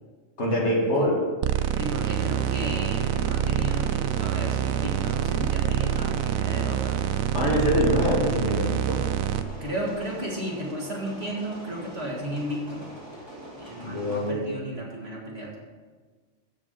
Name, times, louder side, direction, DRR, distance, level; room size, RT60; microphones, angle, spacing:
voice 1, 0.4-1.3 7.3-9.1 13.8-14.5, left 1 dB, 55° left, -2 dB, 2.1 m, -24 dB
sound 1, 1.4-9.4, right 11 dB, 85° right, 1.0 m, -26 dB
sound 2, 1.8-14.3, equal, 20° right, 1.8 m, -43 dB
voice 2, 1.8-7.0 9.6-12.9 13.6-15.6, right 1 dB, 50° right, -3 dB, 2.2 m, -33 dB
14.0 x 4.9 x 5.2 m, 1.4 s
omnidirectional pair, 1.4 m